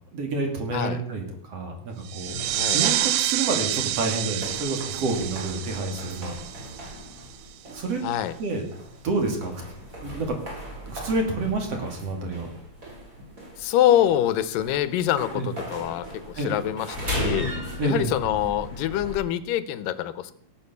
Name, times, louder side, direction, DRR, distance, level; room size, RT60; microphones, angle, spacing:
voice 1, 0.1-2.4 2.7-6.4 7.7-8.0 8.4-8.7 9.0-9.6 10.0-10.4 10.9-12.5 15.4-15.5 16.4-16.5 17.8-18.1, right 3 dB, 50° right, 3 dB, 3.4 m, -28 dB
sound 1, 2.0-7.4, right 13 dB, 85° right, 2.5 m, -28 dB
sound 2, 2.3-19.2, equal, 25° right, 5.5 m, -37 dB
voice 2, 8.0-8.3 13.6-17.5 17.8-20.3, left 12 dB, 85° left, 15 dB, 2.4 m, -25 dB
17.5 x 7.5 x 6.8 m, 0.64 s
omnidirectional pair, 3.8 m